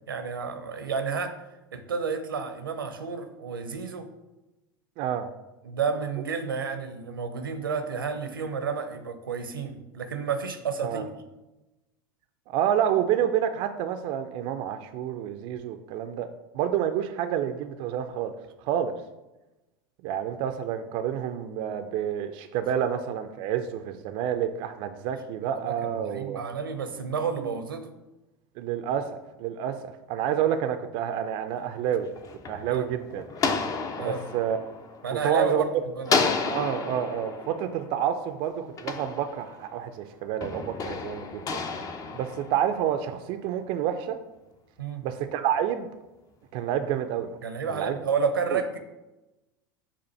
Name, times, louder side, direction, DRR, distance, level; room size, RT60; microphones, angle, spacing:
voice 1, 0.1-1.3 1.7-4.1 5.6-11.1 25.6-27.9 32.7-32.8 34.0-34.2 35.0-35.7 36.0-36.1 44.8-45.0 47.4-48.8, right 5 dB, 80° right, 8 dB, 0.7 m, -30 dB
voice 2, 5.0-5.3 10.8-11.0 12.5-16.3 16.5-18.3 18.6-18.9 20.0-26.4 28.6-29.1 29.4-29.8 30.1-32.1 32.5-33.2 34.0-34.6 35.1-35.7 36.5-41.4 41.9-44.2 45.0-45.9 46.5-47.3 47.7-48.0 48.5-48.6, right 9 dB, 50° right, 8 dB, 0.4 m, -28 dB
sound 1, 31.9-35.6 36.0-39.8 40.4-43.1, left 4 dB, 30° left, 0.6 m, -32 dB
7.0 x 2.5 x 5.4 m, 1.0 s
figure-of-eight pair, 80°, 11 cm